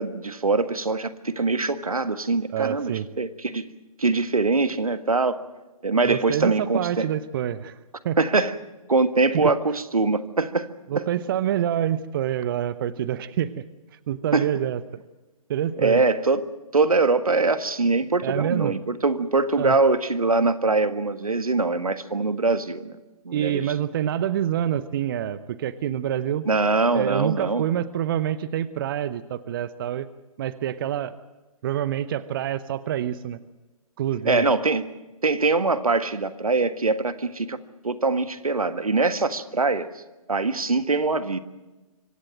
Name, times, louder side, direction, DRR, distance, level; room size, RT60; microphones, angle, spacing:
voice 1, 0.0-3.7 4.0-5.4 5.8-7.1 8.2-8.5 8.9-10.7 10.9-11.0 14.3-14.5 15.8-23.0 23.2-23.7 26.5-27.6 34.2-34.8 35.2-37.6 37.8-39.9 40.3-41.4, right 3 dB, 75° right, 11 dB, 1.6 m, -23 dB
voice 2, 2.5-3.1 6.0-7.8 8.0-8.2 9.3-9.5 10.9-13.7 14.1-15.0 15.5-16.0 18.2-18.7 19.6-19.8 23.3-26.5 26.9-30.1 30.4-31.2 31.6-33.4 34.0-34.5, right 10 dB, 40° right, 16 dB, 0.8 m, -27 dB
25.0 x 17.0 x 7.8 m, 1.1 s
figure-of-eight pair, 130°, 18 cm